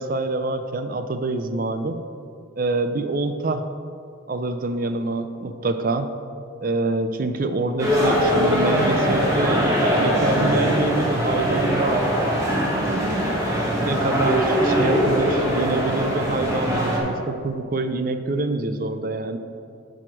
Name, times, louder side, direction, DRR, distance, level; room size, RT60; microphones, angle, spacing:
voice 1, 0.0-2.1 2.6-3.7 4.3-6.1 6.6-12.1 12.7-13.4 13.7-19.4, right 2 dB, 45° right, 8 dB, 0.5 m, -26 dB
sound 1, 7.8-17.0, equal, 15° right, 1.6 m, -21 dB
9.5 x 4.9 x 6.1 m, 2.4 s
head